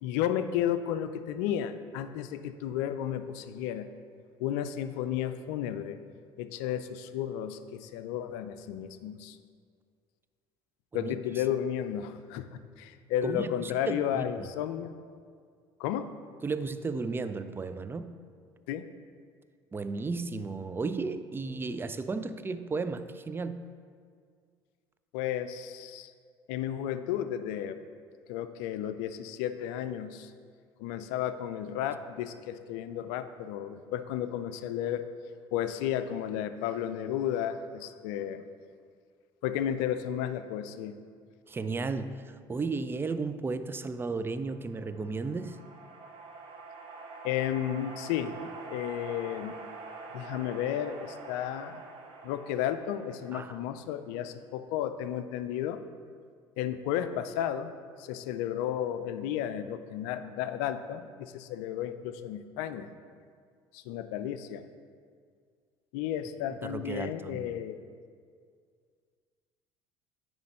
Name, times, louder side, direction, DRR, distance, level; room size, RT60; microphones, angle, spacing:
voice 1, 0.0-3.9 4.4-6.0 6.4-9.4 10.9-14.9 15.8-16.1 18.7-18.9 25.1-26.1 26.5-27.8 28.3-30.3 30.8-35.1 35.5-38.4 39.4-40.9 47.2-48.4 48.7-49.5 50.1-51.8 52.2-55.8 56.6-57.7 58.0-62.9 63.7-64.7 65.9-67.8, left 10 dB, 70° left, 11 dB, 0.4 m, -33 dB
voice 2, 13.2-14.5 16.4-18.1 19.7-23.6 41.5-42.2 42.5-45.6 53.3-53.6 66.6-67.5, right 4 dB, 20° right, 11 dB, 0.4 m, -34 dB
sound 1, 44.5-54.0, right 3 dB, 50° right, 1.0 m, -46 dB
9.2 x 3.1 x 5.3 m, 2.1 s
hypercardioid pair, 65°, 12 cm